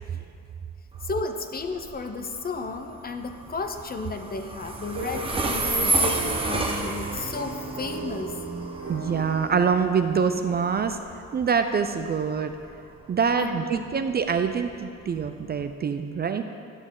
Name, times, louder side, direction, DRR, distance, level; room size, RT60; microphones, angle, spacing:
Train, 0.9-15.7, right 2 dB, 20° right, 0.9 m, -32 dB
voice 1, 1.0-8.4 13.4-13.9, left 3 dB, 30° left, 7 dB, 0.6 m, -33 dB
sound 1, 4.9-10.8, right 3 dB, 55° right, 2.0 m, -37 dB
voice 2, 8.9-11.0 11.3-12.5 13.1-16.4, right 6 dB, 35° right, 8 dB, 0.4 m, -25 dB
12.0 x 6.1 x 3.7 m, 2.5 s
cardioid pair, 90°, 30 cm